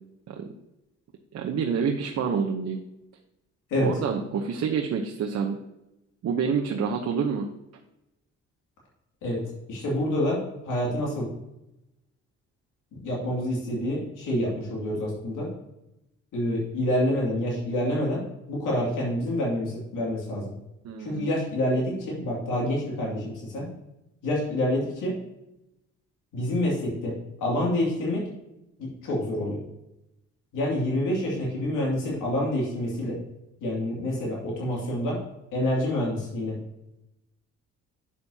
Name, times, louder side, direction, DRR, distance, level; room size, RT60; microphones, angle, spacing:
voice 1, 1.3-2.8 3.8-5.6 6.2-7.5 20.8-21.3, right 6 dB, 60° right, 2 dB, 0.9 m, -27 dB
voice 2, 9.7-10.4 10.6-11.3 13.0-15.5 16.3-18.2 18.5-20.5 21.0-23.7 24.2-25.1 26.3-27.1 27.4-28.2 28.8-29.6 30.5-33.2 33.6-35.2 35.5-36.6, left 1 dB, 85° left, -4 dB, 2.6 m, -27 dB
8.5 x 6.8 x 2.8 m, 0.91 s
cardioid pair, 90°, 30 cm